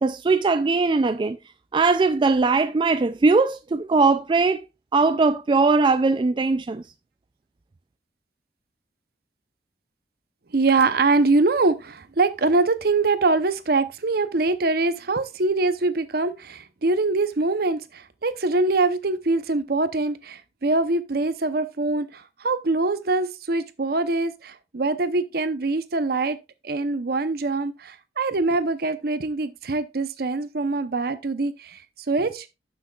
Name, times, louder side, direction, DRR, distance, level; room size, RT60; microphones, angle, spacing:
voice 1, 0.0-1.4 1.7-4.6 4.9-6.8, right 3 dB, 25° right, 0.3 m, -20 dB
voice 2, 10.5-26.4 26.6-31.8 32.1-32.5, right 3 dB, 60° right, 0.7 m, -23 dB
11.5 x 6.3 x 2.4 m
head